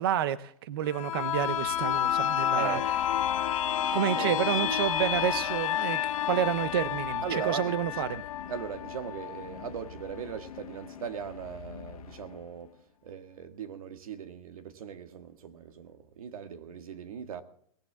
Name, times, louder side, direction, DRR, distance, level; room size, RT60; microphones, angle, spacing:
voice 1, 0.0-2.8 3.9-6.0 6.3-8.1, right 10 dB, 40° right, 0.5 m, -29 dB
sound 1, 0.9-10.4 10.8-10.9, left 10 dB, 65° left, 1.5 m, -30 dB
sound 2, 1.1-12.8, left 9 dB, 90° left, 1.4 m, -47 dB
voice 2, 2.5-2.9 4.1-4.8 7.2-8.0 8.5-17.4, right 7 dB, 75° right, 1.9 m, -39 dB
18.0 x 18.0 x 3.5 m
supercardioid pair, 175°, 18 cm